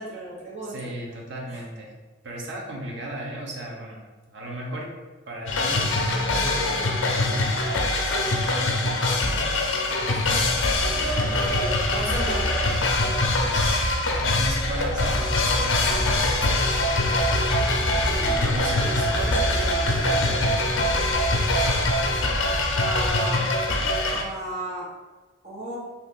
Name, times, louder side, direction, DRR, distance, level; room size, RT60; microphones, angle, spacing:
voice 1, 0.0-0.7 10.0-10.5 11.0-12.8 18.1-18.6 22.7-23.4 24.1-24.9 25.4-25.8, right 1 dB, 35° right, -6 dB, 1.0 m, -34 dB
voice 2, 0.6-2.0 2.2-4.0 4.3-4.9 5.3-7.5 7.9-9.1 11.1-11.7 13.4-16.9 18.0-20.8, right 1 dB, 60° right, -1 dB, 0.6 m, -36 dB
sound 1, 5.5-24.2, left 2 dB, 75° left, 0.5 m, -24 dB
sound 2, 10.2-23.1, equal, ahead, 0.5 m, -31 dB
2.7 x 2.4 x 3.5 m, 1.3 s
head